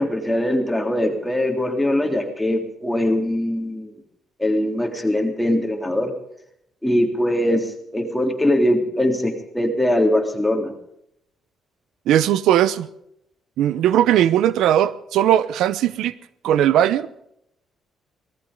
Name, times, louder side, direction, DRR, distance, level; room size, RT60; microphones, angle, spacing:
voice 1, 0.0-3.9 4.4-6.1 6.8-10.7, left 1 dB, 5° left, 2 dB, 3.4 m, -21 dB
voice 2, 12.1-12.9 13.6-16.1 16.4-17.1, right 11 dB, 85° right, 17 dB, 0.7 m, -18 dB
18.5 x 14.0 x 5.3 m, 0.76 s
cardioid pair, 90°, 0 cm